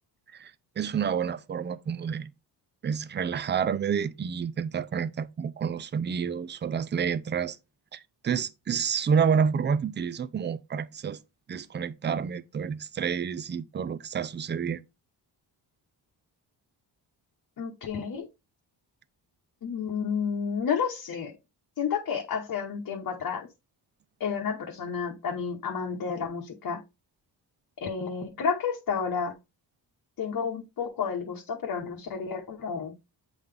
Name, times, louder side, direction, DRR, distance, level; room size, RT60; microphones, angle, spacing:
voice 1, 0.3-2.3 2.8-7.6 7.9-11.2 11.5-14.8, right 7 dB, 25° right, 0.4 m, -29 dB
voice 2, 17.6-18.2 19.6-21.3 21.8-23.5 24.2-26.8 27.8-29.3 30.2-32.9, left 6 dB, 50° left, 1.0 m, -31 dB
7.9 x 3.8 x 3.3 m
cardioid pair, 105°, 43 cm